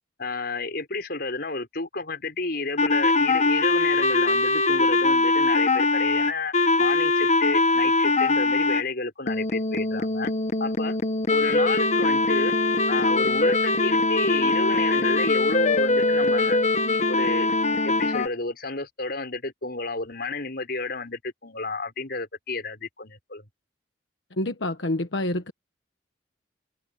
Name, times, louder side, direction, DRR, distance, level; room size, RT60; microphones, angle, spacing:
voice 1, 0.2-10.3 10.6-11.0 11.3-12.6 12.9-17.5 17.8-23.5, left 3 dB, 60° left, 5.9 m, -31 dB
sound 1, 2.8-8.8 9.3-18.3, left 3 dB, 40° left, 1.3 m, -22 dB
voice 2, 24.4-25.5, left 1 dB, 90° left, 1.3 m, -27 dB
open air
head